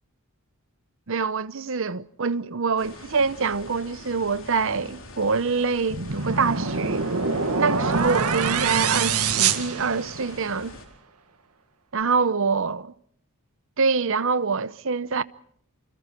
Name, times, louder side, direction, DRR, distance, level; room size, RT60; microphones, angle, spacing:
voice 1, 1.1-7.1 7.6-10.7 11.9-12.9 13.8-15.2, right 5 dB, 60° right, 0.8 m, -25 dB
sound 1, 2.8-10.9, left 2 dB, 60° left, 4.4 m, -44 dB
sound 2, 5.9-10.5, right 5 dB, 85° right, 1.9 m, -25 dB
28.0 x 25.5 x 4.6 m
head